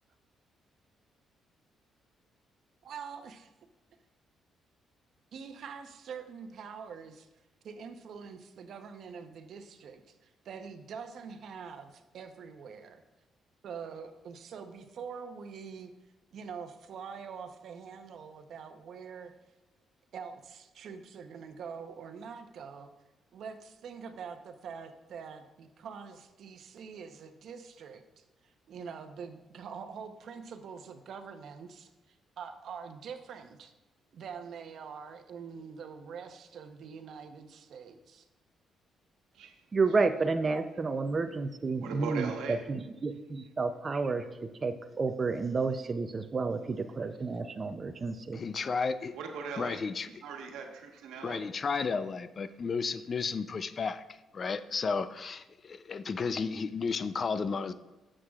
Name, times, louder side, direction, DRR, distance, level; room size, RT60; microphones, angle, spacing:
voice 1, 2.8-3.5 5.3-7.3 7.6-13.0 13.6-15.9 16.3-19.3 20.1-22.9 23.3-33.7 34.1-38.3, right 6 dB, 65° right, 7 dB, 0.8 m, -45 dB
voice 2, 39.7-48.4, right 4 dB, 35° right, 8 dB, 0.5 m, -31 dB
voice 3, 41.8-42.6 49.1-49.8 50.1-51.4 51.8-51.9, right 5 dB, 90° right, 3 dB, 1.2 m, -39 dB
voice 4, 48.3-49.1 49.6-50.2 51.2-54.0 54.3-57.7, left 5 dB, 45° left, 13 dB, 0.4 m, -33 dB
12.5 x 7.6 x 2.4 m, 1.1 s
cardioid pair, 90°, 0 cm